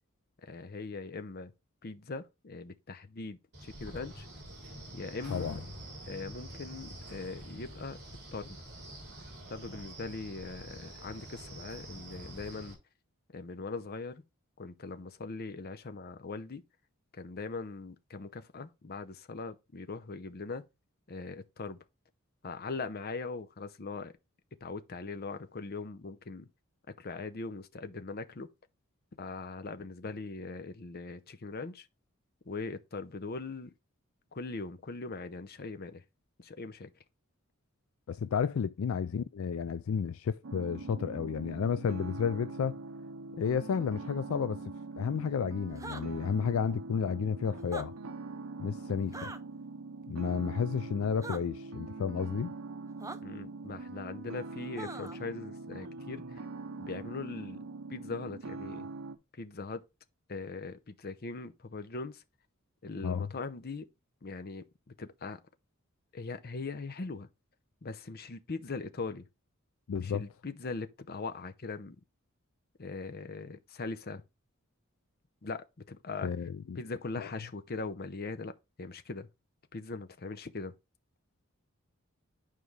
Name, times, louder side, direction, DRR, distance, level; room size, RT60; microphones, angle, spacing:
voice 1, 0.4-1.5 1.8-4.3 4.9-5.6 6.1-8.0 8.3-8.6 9.5-12.8 13.3-14.2 14.6-16.6 17.1-20.6 21.1-21.8 22.4-24.1 24.6-26.5 27.0-28.5 29.2-31.9 32.5-33.7 34.3-36.0 36.4-36.9 53.2-56.4 56.8-57.6 57.9-58.9 59.4-59.8 60.3-62.2 62.8-63.9 64.2-64.6 65.0-65.4 66.1-67.3 67.8-69.3 70.0-72.0 72.8-74.2 75.4-76.3 76.8-78.5 78.8-79.3 79.7-80.7, left 3 dB, 45° left, 0.7 m, -40 dB
Wind, 3.5-12.7, right 1 dB, 55° right, 3.4 m, -46 dB
voice 2, 38.1-42.8 43.4-44.6 45.0-47.9 48.6-49.3 50.1-52.5 63.0-63.3 69.9-70.2 76.2-76.8 77.2-77.3, left 6 dB, 70° left, 0.4 m, -32 dB
sound 1, 40.4-59.2, right 3 dB, 80° right, 0.8 m, -43 dB
sound 2, 45.8-46.0 47.6-47.9 49.1-49.4 51.2-51.4 53.0-53.2 54.8-55.2, right 3 dB, 15° right, 0.6 m, -41 dB
9.3 x 4.9 x 3.2 m
head